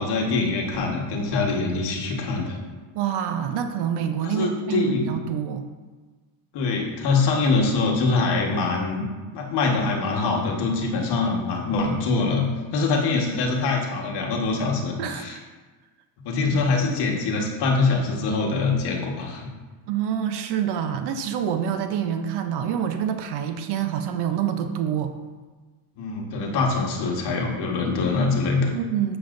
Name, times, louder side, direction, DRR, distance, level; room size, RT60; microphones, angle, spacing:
voice 1, 0.0-2.6 4.2-5.1 6.5-9.0 9.3-15.4 16.2-19.5 26.0-28.7, left 3 dB, 55° left, 0 dB, 1.4 m, -24 dB
voice 2, 2.9-5.7 15.0-15.4 19.9-25.1 28.7-29.2, right 9 dB, 55° right, 7 dB, 0.7 m, -26 dB
7.0 x 7.0 x 2.6 m, 1.3 s
cardioid pair, 135°, 48 cm